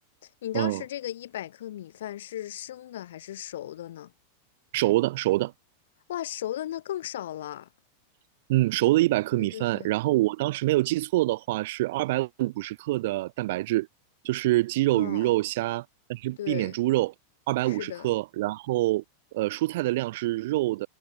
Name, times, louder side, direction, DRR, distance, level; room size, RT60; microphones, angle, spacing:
voice 1, 0.2-4.1 6.1-7.7 9.4-9.9 14.9-15.4 16.4-16.8 17.6-18.1, left 12 dB, 60° left, 0.7 m, -36 dB
voice 2, 4.7-5.5 8.5-13.9 14.2-17.1 17.5-19.0 19.3-20.9, right 18 dB, 50° right, 0.5 m, -25 dB
figure-of-eight pair, 90°, 0 cm